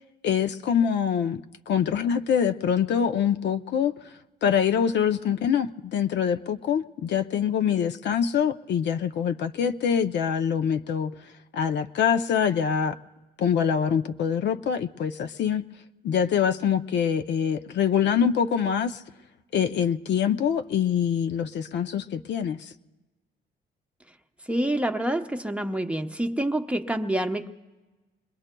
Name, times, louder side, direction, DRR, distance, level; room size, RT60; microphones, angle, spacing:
voice 1, 0.2-3.9 4.4-11.1 11.5-13.0 13.4-15.6 16.0-19.0 19.5-22.7, left 8 dB, 60° left, 8 dB, 0.5 m, -24 dB
voice 2, 24.5-27.5, right 1 dB, 5° right, 6 dB, 0.8 m, -27 dB
26.0 x 21.0 x 2.2 m, 1.2 s
cardioid pair, 90°, 20 cm